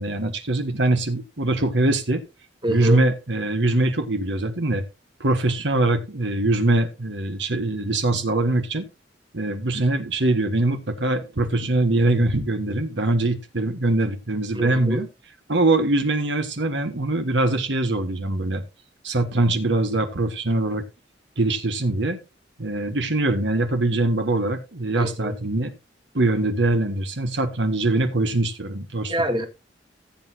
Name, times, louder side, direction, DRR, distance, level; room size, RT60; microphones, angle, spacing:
voice 1, 0.0-2.2 2.7-4.8 5.2-8.9 9.3-15.1 15.5-18.6 19.0-20.8 21.4-22.2 22.6-25.7 26.1-29.2, right 2 dB, 80° right, 1.5 m, -22 dB
voice 2, 2.6-3.0 14.5-15.0 25.0-25.3 29.1-29.5, right 1 dB, 25° right, 1.9 m, -26 dB
16.0 x 8.2 x 2.8 m
head